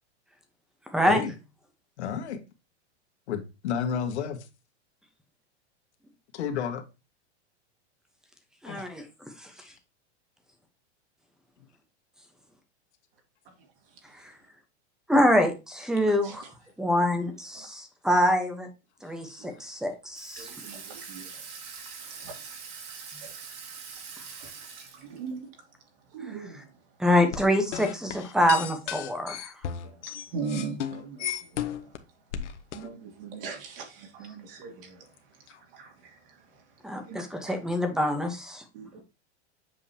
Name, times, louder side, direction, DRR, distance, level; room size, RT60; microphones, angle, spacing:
voice 1, 0.9-1.2 8.6-9.0 9.4-9.5 15.1-16.4 16.8-18.7 19.0-20.5 27.0-29.5 36.8-38.6, equal, ahead, 0.9 m, -25 dB
voice 2, 2.0-2.4 3.3-4.4 6.3-6.8 8.7-8.9 9.6-9.7 35.5-35.6, left 7 dB, 70° left, 1.8 m, -31 dB
voice 3, 16.1-16.5 17.5-17.7 19.4-19.6 20.4-21.4 22.1-22.5 23.2-23.3 24.4-24.5 25.0-25.5 26.1-26.7 29.8-30.0 30.3-31.9 32.4-35.1 35.7-36.6 37.1-37.5 38.7-39.0, right 5 dB, 55° right, 2.5 m, -40 dB
Water tap faucet / Sink (filling or washing), 20.1-25.4, right 5 dB, 35° right, 2.1 m, -43 dB
sound 1, 27.3-32.0 32.3-32.9, left 9 dB, 85° left, 1.2 m, -34 dB
7.5 x 5.3 x 2.8 m
supercardioid pair, 160°, 34 cm